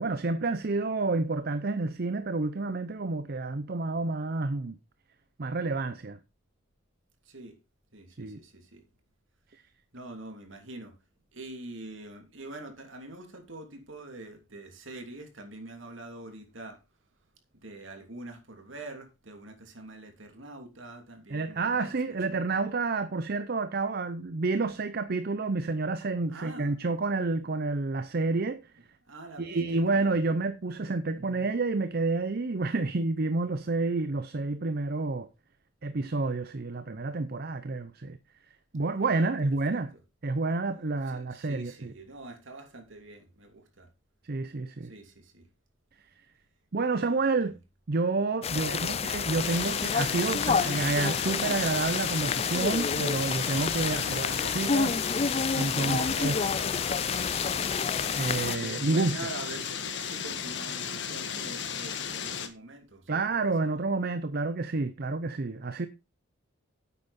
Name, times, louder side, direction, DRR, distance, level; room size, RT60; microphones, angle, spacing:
voice 1, 0.0-4.8 5.4-6.2 8.2-8.4 21.3-28.6 29.4-35.3 35.8-38.2 38.7-39.9 40.2-41.9 44.3-44.9 46.7-47.6 47.9-54.9 55.5-56.4 58.1-59.2 63.1-65.9, right 3 dB, 50° right, 0.6 m, -29 dB
voice 2, 7.9-8.8 9.9-10.9 11.3-16.8 17.6-22.4 26.3-26.7 29.1-30.1 39.0-39.3 39.7-39.8 41.1-43.9 44.8-45.4 47.0-47.2 48.6-49.0 54.0-54.8 55.8-56.8 58.6-63.4, right 2 dB, 65° right, 2.8 m, -44 dB
sound 1, 48.4-58.6, left 6 dB, 30° left, 0.4 m, -29 dB
sound 2, 49.4-62.5, left 7 dB, 55° left, 1.5 m, -35 dB
10.5 x 8.4 x 4.2 m
head